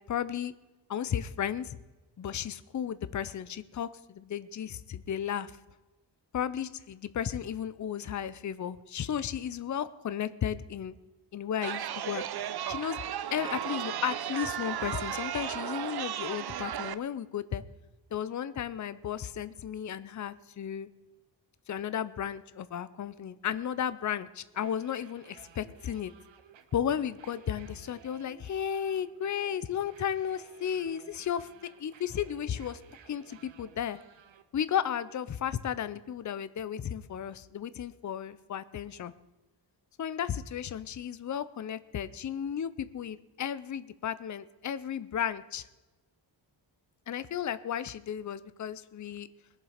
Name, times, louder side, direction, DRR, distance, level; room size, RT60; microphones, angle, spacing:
voice 1, 0.1-0.5 0.9-1.8 2.2-5.6 6.3-10.9 11.3-12.2 12.7-13.0 13.3-17.6 18.1-20.9 21.7-26.1 26.7-31.5 31.8-32.8 33.0-34.0 34.5-39.1 40.0-45.7 47.1-49.3, left 9 dB, 40° left, 15 dB, 0.6 m, -34 dB
Chatter, 11.6-16.9, right 10 dB, 60° right, 0.7 m, -35 dB
sound 1, 24.4-34.4, right 7 dB, 85° right, 1.1 m, -56 dB
21.0 x 7.4 x 5.0 m, 1.1 s
wide cardioid pair, 130°, 44 cm